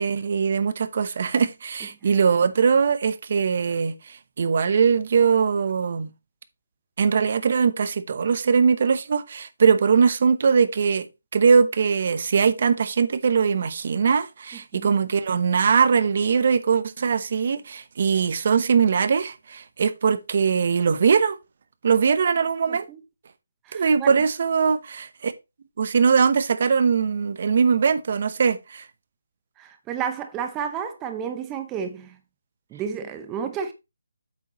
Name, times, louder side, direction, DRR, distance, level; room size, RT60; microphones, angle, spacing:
voice 1, 0.0-6.1 7.0-11.1 11.3-21.4 21.8-22.8 23.7-25.3 25.8-28.9, right 6 dB, 45° right, 0.9 m, -21 dB
voice 2, 22.7-23.0 23.7-24.1 29.6-32.2 32.7-33.7, right 7 dB, 15° right, 0.7 m, -31 dB
8.6 x 6.6 x 3.1 m
hypercardioid pair, 165°, 0 cm